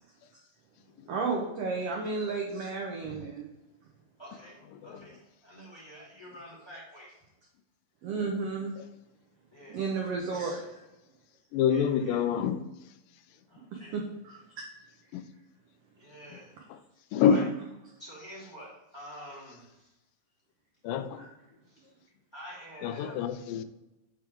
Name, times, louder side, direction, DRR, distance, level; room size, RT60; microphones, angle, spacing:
voice 1, 1.1-3.5 8.0-8.7 9.7-10.8 13.9-14.7 21.2-21.3, right 4 dB, 85° right, 1.3 m, -33 dB
voice 2, 4.2-7.2 9.5-9.9 11.7-12.2 13.5-14.0 16.0-16.6 17.2-17.4 18.0-19.9 21.7-21.9 22.3-23.3, equal, 10° left, 1.9 m, -47 dB
voice 3, 4.7-5.1 8.2-8.5 11.5-12.6 15.1-15.3 16.3-16.4 16.7-16.8 17.1-17.5 20.8-21.3 22.8-23.6, left 7 dB, 85° left, 2.3 m, -27 dB
7.4 x 3.6 x 4.5 m
omnidirectional pair, 3.9 m